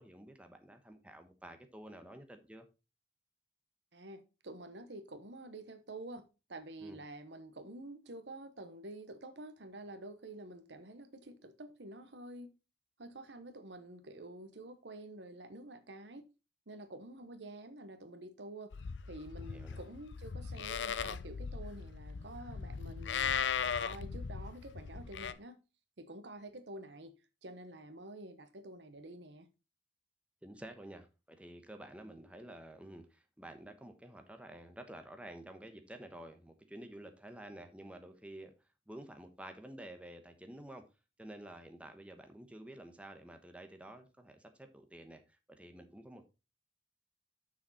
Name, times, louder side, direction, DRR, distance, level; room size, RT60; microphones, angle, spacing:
voice 1, 0.0-2.7 6.8-7.0 19.4-19.8 30.4-38.5 38.9-40.8 41.2-46.3, right 1 dB, 5° right, 1.0 m, -50 dB
voice 2, 3.9-12.5 13.0-16.3 16.7-23.4 23.8-25.6 26.0-27.1 27.4-29.5, right 2 dB, 75° right, 1.1 m, -49 dB
Livestock farm animals working animals, 18.7-25.3, left 7 dB, 85° left, 0.5 m, -38 dB
7.2 x 6.3 x 4.1 m
head